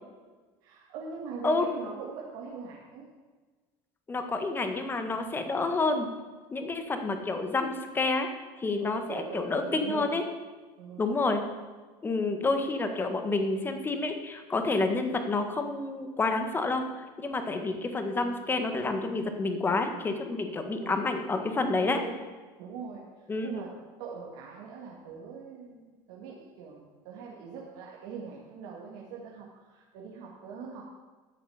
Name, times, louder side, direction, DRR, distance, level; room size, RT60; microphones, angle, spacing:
voice 1, 0.6-3.1 8.8-10.2 10.8-11.1 20.7-21.1 21.7-22.2 22.6-30.9, right 5 dB, 75° right, -3 dB, 2.2 m, -42 dB
voice 2, 4.1-6.1 6.5-8.3 8.6-10.2 11.0-11.4 12.0-16.8 17.2-22.0 23.3-23.6, left 3 dB, 20° left, 6 dB, 1.5 m, -29 dB
13.0 x 7.2 x 7.1 m, 1.3 s
cardioid pair, 135°, 12 cm